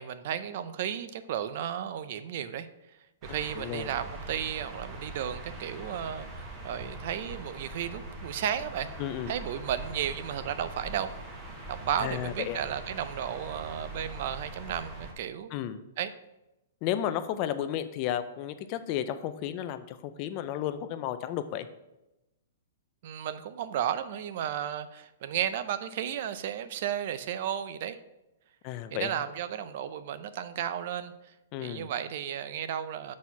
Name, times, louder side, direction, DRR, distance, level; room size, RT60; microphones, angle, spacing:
voice 1, 0.0-2.7 3.2-9.0 9.3-11.1 11.7-15.5 16.0-16.1 23.0-28.0 28.9-31.1 31.6-33.1, right 9 dB, 50° right, 12 dB, 0.5 m, -34 dB
sound 1, 3.2-15.1, right 2 dB, 20° right, 1.2 m, -42 dB
voice 2, 3.6-3.9 9.0-9.3 12.0-12.6 15.5-15.8 16.8-21.7 28.6-29.1 31.5-31.9, left 11 dB, 30° left, 11 dB, 0.4 m, -33 dB
6.3 x 4.2 x 5.8 m, 0.94 s
hypercardioid pair, 160°, 0 cm